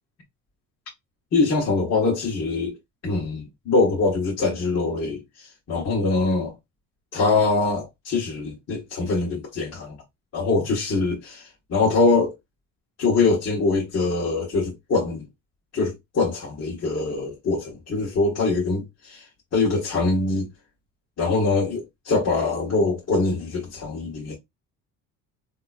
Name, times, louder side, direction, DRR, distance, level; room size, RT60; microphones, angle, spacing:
voice 1, 1.3-2.7 3.0-6.5 7.1-10.0 10.3-12.3 13.0-15.2 15.7-19.2 19.5-20.5 21.2-24.3, left 3 dB, 50° left, 1.6 m, -23 dB
3.7 x 2.9 x 2.4 m
cardioid pair, 90°, 33 cm